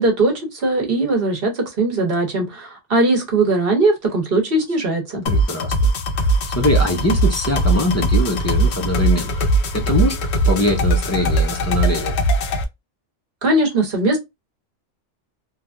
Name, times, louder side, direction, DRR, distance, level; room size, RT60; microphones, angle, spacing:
voice 1, 0.0-5.2 13.4-14.2, right 2 dB, 55° right, 1.2 m, -19 dB
sound 1, 5.3-12.6, right 1 dB, 70° left, 0.9 m, -19 dB
voice 2, 5.3-9.5 9.7-10.1 10.5-12.2, left 1 dB, 25° left, 0.3 m, -22 dB
3.2 x 2.2 x 2.5 m
omnidirectional pair, 1.2 m